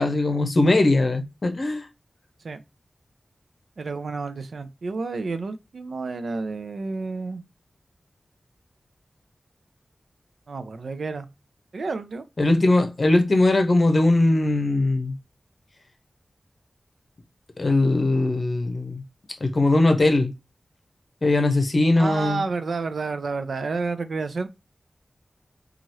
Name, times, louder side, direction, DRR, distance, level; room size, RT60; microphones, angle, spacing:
voice 1, 0.0-1.9 12.4-15.2 17.6-19.0 19.4-20.3 21.2-22.4, left 2 dB, 50° left, 0.7 m, -20 dB
voice 2, 3.8-7.4 10.5-11.3 11.7-12.2 22.0-24.5, right 4 dB, 80° right, 0.4 m, -30 dB
3.0 x 2.4 x 2.6 m
wide cardioid pair, 70°, 0 cm